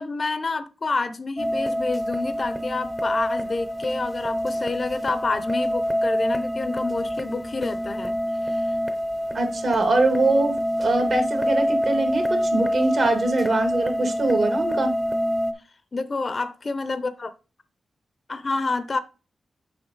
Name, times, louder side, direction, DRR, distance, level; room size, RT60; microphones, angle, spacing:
voice 1, 0.0-8.2 8.4-8.7 15.9-17.3 18.3-19.0, left 3 dB, 35° left, 0.6 m, -28 dB
sound 1, 1.4-15.5, equal, 10° right, 0.7 m, -26 dB
voice 2, 9.3-10.5 10.8-14.9, right 2 dB, 55° right, 1.7 m, -22 dB
7.0 x 5.3 x 3.9 m
wide cardioid pair, 155°, 0 cm